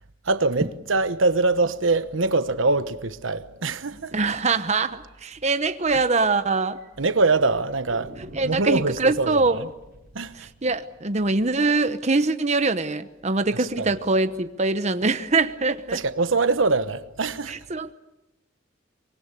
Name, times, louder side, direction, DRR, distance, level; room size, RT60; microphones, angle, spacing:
voice 1, 0.3-4.1 7.0-8.1 8.4-9.7 10.1-10.4 13.6-13.9 15.9-17.6, right 3 dB, 90° right, 1.1 m, -23 dB
voice 2, 4.1-6.8 8.2-9.7 10.3-16.0 17.5-17.9, right 3 dB, 35° right, 1.0 m, -23 dB
sound 1, 5.1-5.2 5.5-5.6 5.9-6.0 6.6-7.2 7.9-12.7, right 1 dB, 55° right, 6.4 m, -48 dB
24.5 x 23.0 x 8.3 m
head